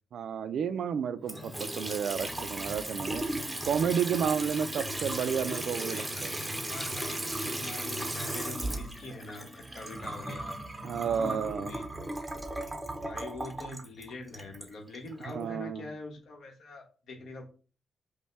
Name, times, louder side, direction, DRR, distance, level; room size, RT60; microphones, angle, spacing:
voice 1, 0.1-3.2 3.6-6.4 10.8-11.7 15.3-15.9, right 7 dB, 70° right, 0.3 m, -31 dB
Water tap faucet / Sink (filling or washing) / Trickle dribble, 1.2-15.3, right 1 dB, 10° right, 0.6 m, -36 dB
voice 2, 6.4-11.9 13.0-17.5, left 2 dB, 70° left, 1.2 m, -44 dB
5.3 x 2.2 x 3.3 m
wide cardioid pair, 145°, 0 cm